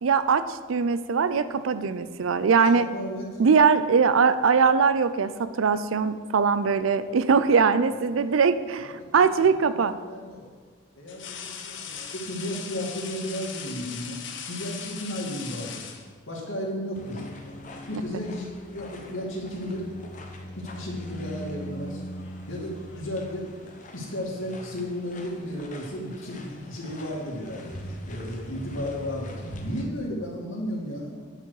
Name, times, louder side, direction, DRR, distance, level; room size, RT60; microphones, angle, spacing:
voice 1, 0.0-2.9 3.4-9.9, right 5 dB, 85° right, 13 dB, 0.5 m, -21 dB
voice 2, 2.8-3.3 8.8-10.4 11.0-14.2 14.5-15.8 16.3-17.2 17.9-19.9 20.6-22.0 22.5-23.5 23.9-31.2, equal, 90° left, -2 dB, 2.3 m, -34 dB
sound 1, 6.8-7.6 9.4-9.5 11.1-16.5 17.7-17.9 18.3-19.1 19.4-19.7 20.6-23.2, left 7 dB, 65° left, 0.8 m, -41 dB
sound 2, 16.9-29.8, equal, 40° left, 0.9 m, -41 dB
9.9 x 6.0 x 4.8 m, 1.5 s
head